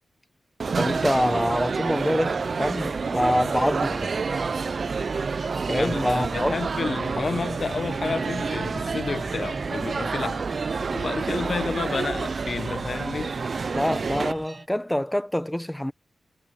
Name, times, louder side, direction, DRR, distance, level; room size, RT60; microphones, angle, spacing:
sound 1, 0.6-14.3, right 5 dB, 50° right, 0.4 m, -28 dB
voice 1, 0.8-4.1 5.7-6.5 13.7-15.9, left 1 dB, 5° left, 1.2 m, -25 dB
sound 2, 1.2-14.7, right 3 dB, 30° right, 5.9 m, -44 dB
sound 3, 2.4-14.5, right 1 dB, 10° right, 2.3 m, -43 dB
voice 2, 5.7-10.4 10.9-13.4, left 4 dB, 45° left, 0.9 m, -30 dB
wide cardioid pair, 150°, 0 cm